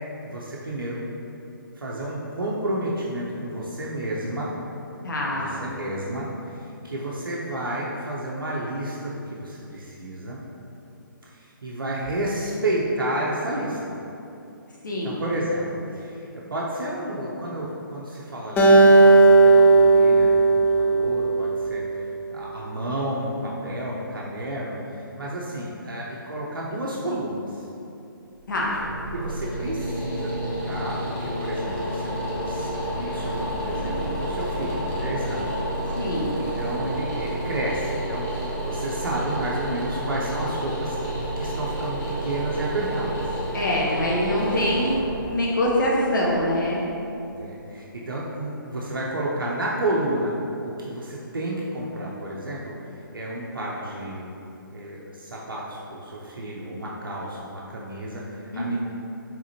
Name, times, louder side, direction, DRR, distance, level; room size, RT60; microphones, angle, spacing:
voice 1, 0.2-1.0 1.8-4.5 5.3-10.4 11.3-14.0 15.0-16.2 16.5-27.7 29.1-41.1 41.4-43.4 47.3-50.3 50.6-54.3 54.7-58.8, right 1 dB, 70° right, -4 dB, 0.6 m, -31 dB
voice 2, 5.0-5.5 14.8-15.1 28.5-28.7 36.0-36.3 43.5-44.9 45.3-46.8 58.5-58.8, left 1 dB, 60° left, -4 dB, 0.8 m, -24 dB
Acoustic guitar, 18.6-21.9, right 3 dB, 15° left, 0.5 m, -15 dB
sound 1, 28.3-47.3, right 1 dB, 40° left, 1.1 m, -30 dB
4.8 x 3.6 x 2.8 m, 2.8 s
figure-of-eight pair, 135°, 12 cm